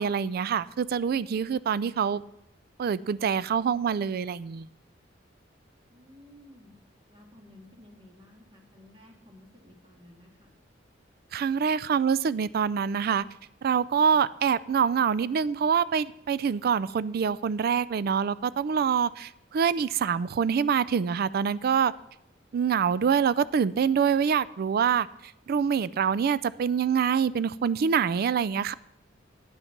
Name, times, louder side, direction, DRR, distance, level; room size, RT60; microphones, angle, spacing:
voice 1, 0.0-2.2 2.8-4.7 11.3-13.2 13.6-21.9 22.5-28.7, right 7 dB, 55° right, 18 dB, 0.3 m, -25 dB
voice 2, 5.9-6.7 7.1-10.5, left 1 dB, 30° right, 1 dB, 2.0 m, -54 dB
9.5 x 8.1 x 5.8 m, 0.80 s
head